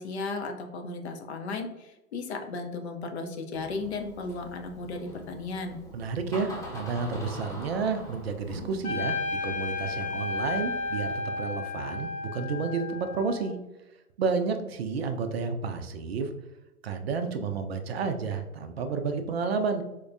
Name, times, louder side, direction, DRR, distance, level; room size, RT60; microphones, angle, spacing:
voice 1, 0.0-5.8, left 3 dB, 50° left, 4 dB, 0.6 m, -35 dB
Door, 3.5-11.2, left 1 dB, 5° left, 0.9 m, -44 dB
voice 2, 5.9-13.6 14.2-16.3 16.8-19.8, right 5 dB, 45° right, 7 dB, 0.4 m, -31 dB
Trumpet, 8.8-13.5, left 3 dB, 85° left, 0.8 m, -33 dB
4.4 x 2.1 x 2.5 m, 1.0 s
figure-of-eight pair, 120°, 44 cm